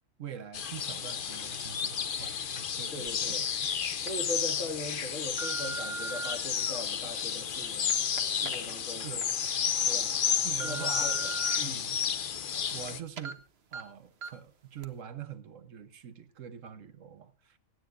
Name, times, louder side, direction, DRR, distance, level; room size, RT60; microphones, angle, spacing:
voice 1, 0.2-3.4 3.6-3.7 8.9-9.4 10.4-11.2 11.6-12.0 12.7-13.4 13.7-17.6, right 9 dB, 70° right, 1.3 m, -44 dB
sound 1, 0.5-13.0, left 8 dB, 50° left, 0.7 m, -32 dB
voice 2, 2.9-3.4 4.0-8.0 8.4-9.1 9.9-10.1 10.6-11.3 11.6-11.9, left 1 dB, 65° left, 2.6 m, -39 dB
sound 2, 3.1-3.2 3.8-4.1 4.7-6.3 7.0-9.3 9.7-9.8 10.3-11.6 12.0-12.9 13.2-13.3 13.7-13.8 14.2-14.5 14.8-14.9, right 3 dB, 50° right, 1.2 m, -41 dB
26.0 x 9.1 x 2.5 m
omnidirectional pair, 1.4 m